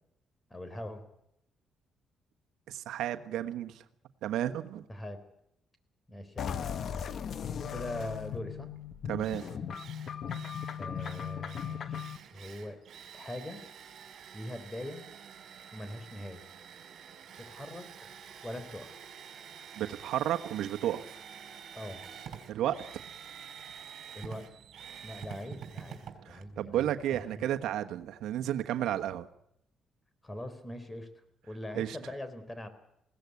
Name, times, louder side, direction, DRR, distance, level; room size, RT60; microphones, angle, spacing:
voice 1, 0.5-1.1 4.9-5.2 6.1-6.5 7.7-8.7 10.8-12.8 13.1-13.6 14.3-15.0 15.7-16.5 17.4-18.1 18.4-19.1 21.7-22.0 24.1-24.5 25.0-27.4 30.2-31.1 31.5-32.7, left 1 dB, 15° left, 11 dB, 3.8 m, -42 dB
voice 2, 2.7-3.8 4.2-4.8 9.1-9.4 19.8-21.2 22.5-22.8 26.2-29.3 31.7-32.0, right 12 dB, 85° right, 7 dB, 1.2 m, -32 dB
sound 1, 6.4-12.2, left 8 dB, 60° left, 1.2 m, -37 dB
Drill, 8.8-8.9 9.2-27.3, right 8 dB, 65° right, 4.4 m, -48 dB
21.0 x 17.5 x 9.5 m, 0.77 s
cardioid pair, 90°, 0 cm